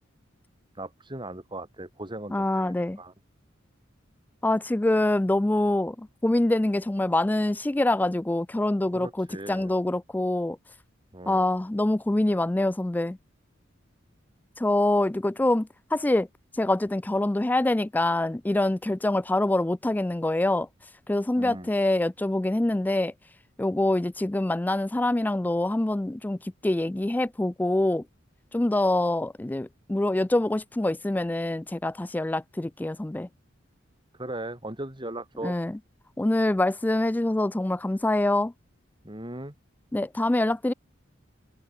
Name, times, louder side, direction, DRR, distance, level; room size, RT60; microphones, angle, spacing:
voice 1, 0.8-3.1 8.9-9.7 11.1-11.5 21.4-21.7 34.2-35.6 39.0-39.5, right 1 dB, 25° right, 4.1 m, -38 dB
voice 2, 2.3-3.0 4.4-10.6 11.3-13.2 14.6-16.3 16.5-20.7 21.1-23.1 23.6-26.4 26.6-28.0 28.5-33.3 35.4-35.7 36.2-38.5 39.9-40.7, left 1 dB, 10° left, 0.3 m, -25 dB
head